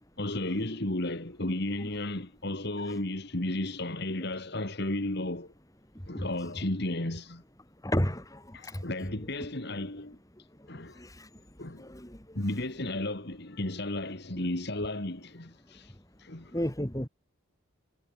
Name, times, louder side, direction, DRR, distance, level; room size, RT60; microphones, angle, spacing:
voice 1, 0.2-5.5 6.1-7.4 7.9-8.1 8.5-10.2 10.7-11.0 11.6-11.9 12.4-15.9 16.2-16.5, left 1 dB, 50° left, 2.1 m, -33 dB
voice 2, 5.9-6.3 7.8-8.8 10.4-11.4 11.8-12.4 16.5-17.1, equal, 15° left, 2.7 m, -34 dB
head